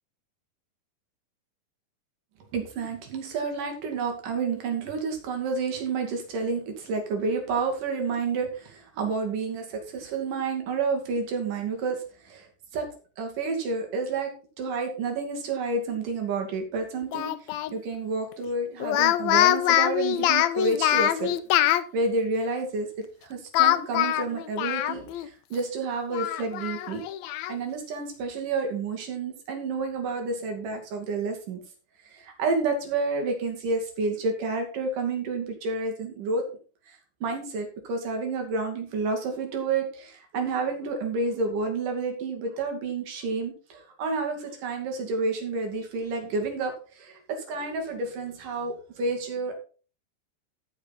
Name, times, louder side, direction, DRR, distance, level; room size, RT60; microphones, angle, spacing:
voice 1, 2.5-12.9 13.2-14.3 14.6-21.3 21.7-27.0 27.5-31.6 32.0-36.4 36.9-49.5, right 3 dB, 70° right, 3 dB, 3.8 m, -30 dB
Speech, 17.1-17.7 18.8-21.8 23.5-25.3 25.6-25.7 26.1-27.5, left 13 dB, 85° left, 1.5 m, -24 dB
14.0 x 6.3 x 4.1 m, 0.38 s
omnidirectional pair, 3.9 m